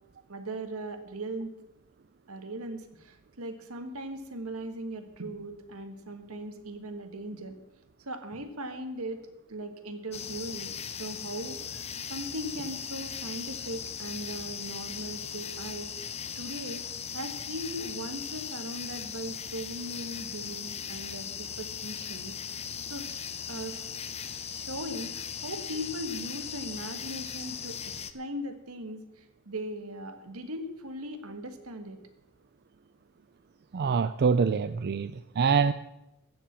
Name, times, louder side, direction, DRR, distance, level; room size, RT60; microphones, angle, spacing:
voice 1, 0.3-1.5 2.3-7.6 8.0-15.9 16.3-16.9 17.1-24.0 24.4-32.0, right 1 dB, 80° right, 8 dB, 1.6 m, -39 dB
sound 1, 10.1-28.1, left 8 dB, 30° left, 0.6 m, -38 dB
voice 2, 33.7-35.7, right 5 dB, 50° right, 13 dB, 0.4 m, -25 dB
15.0 x 7.5 x 7.4 m, 0.90 s
head